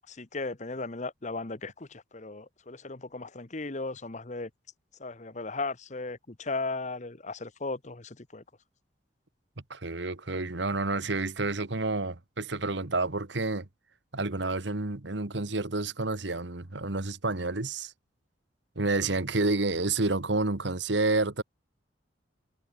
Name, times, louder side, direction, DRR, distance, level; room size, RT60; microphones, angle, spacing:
voice 1, 0.1-4.5 5.0-8.4, left 3 dB, 40° left, 1.2 m, -36 dB
voice 2, 9.7-13.7 14.1-17.9 18.7-21.4, right 3 dB, 70° right, 1.6 m, -29 dB
head